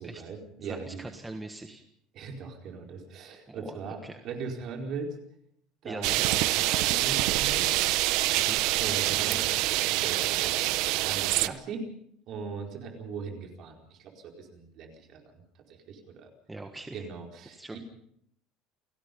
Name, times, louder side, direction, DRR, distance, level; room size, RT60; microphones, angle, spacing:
voice 1, 0.0-1.0 2.1-4.0 4.2-5.1 5.8-7.7 8.8-9.6 10.0-11.9 12.3-15.4 15.7-16.3 16.9-17.8, right 5 dB, 40° right, 2 dB, 4.6 m, -39 dB
voice 2, 0.6-1.8 3.5-4.2 5.8-6.4 8.4-8.6 11.4-11.6 16.5-17.1 17.5-17.8, right 2 dB, 10° right, 5 dB, 1.4 m, -42 dB
sound 1, 6.0-11.5, right 17 dB, 60° right, 0.9 m, -26 dB
29.5 x 17.5 x 5.4 m, 0.69 s
cardioid pair, 170°, 0 cm